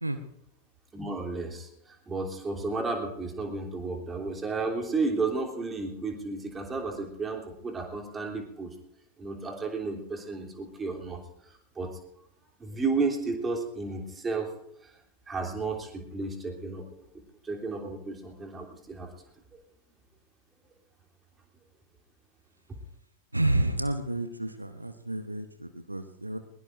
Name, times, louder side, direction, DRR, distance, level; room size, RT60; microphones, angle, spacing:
voice 1, 0.9-8.7 9.2-11.9 12.6-14.5 14.8-14.9 15.3-16.9 17.4-19.1, right 3 dB, 15° right, 1 dB, 3.2 m, -33 dB
voice 2, 23.3-26.4, right 1 dB, 85° right, 9 dB, 0.9 m, -30 dB
21.5 x 21.0 x 2.6 m, 0.81 s
figure-of-eight pair, 90°, 0 cm